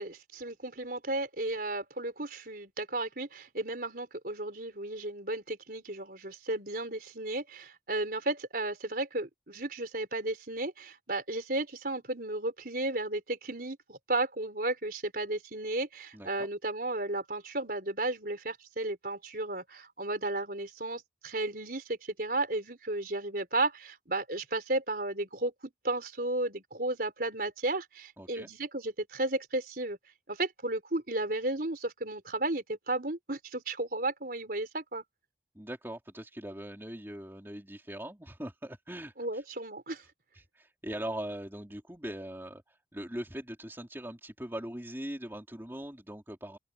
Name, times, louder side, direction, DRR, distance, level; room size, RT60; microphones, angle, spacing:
voice 1, 0.0-30.0 30.3-35.0 39.2-40.0, right 2 dB, 50° right, 4.5 m, -34 dB
voice 2, 16.1-16.5 28.2-28.5 35.5-39.4 40.3-46.6, right 1 dB, 15° right, 3.6 m, -41 dB
open air
head